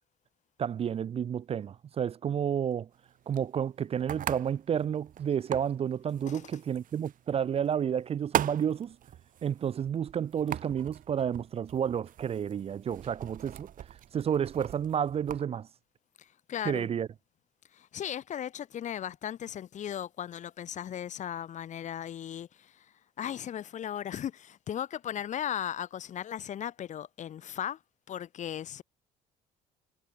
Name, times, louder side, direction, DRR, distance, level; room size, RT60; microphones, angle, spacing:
voice 1, 0.6-2.9 3.3-9.0 9.4-13.7 14.1-15.7 16.6-17.1, right 8 dB, 35° right, 0.5 m, -31 dB
sound 1, 2.9-15.4, right 11 dB, 55° right, 1.0 m, -40 dB
voice 2, 16.5-16.9 17.8-22.5 23.2-27.8 28.1-28.8, left 10 dB, 45° left, 0.7 m, -36 dB
cardioid pair, 110°, 17 cm